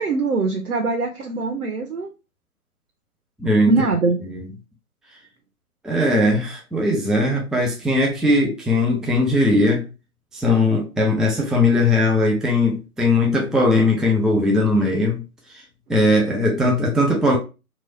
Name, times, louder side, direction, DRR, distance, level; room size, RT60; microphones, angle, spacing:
voice 1, 0.0-2.1 3.6-4.2, right 3 dB, 85° right, 0.7 m, -22 dB
voice 2, 3.4-3.8 4.2-4.5 5.8-9.8 10.3-15.2 15.5-15.6 15.9-17.4, left 1 dB, ahead, 0.3 m, -19 dB
3.0 x 2.3 x 3.8 m
figure-of-eight pair, 150°, 44 cm